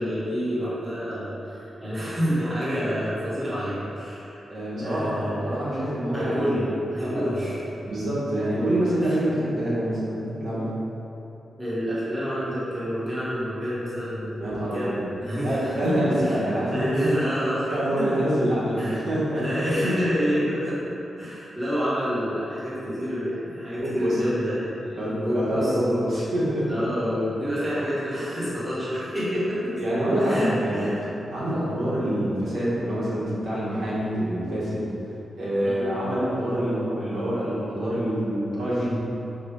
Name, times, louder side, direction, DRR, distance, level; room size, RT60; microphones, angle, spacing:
voice 1, 0.0-4.5 4.8-5.3 6.1-7.6 9.0-9.2 11.6-16.4 16.7-18.2 18.8-19.1 19.3-26.1 26.7-29.8 30.2-31.0 35.6-35.9, equal, 15° right, -10 dB, 1.1 m, -28 dB
voice 2, 4.5-6.6 7.0-7.1 7.9-10.8 14.4-15.0 15.4-17.0 17.7-19.6 23.8-24.2 25.0-26.7 29.8-30.9 31.3-34.9 35.4-38.9, right 1 dB, 65° right, -9 dB, 1.2 m, -26 dB
4.7 x 2.3 x 4.7 m, 2.8 s
wide cardioid pair, 165°, 0 cm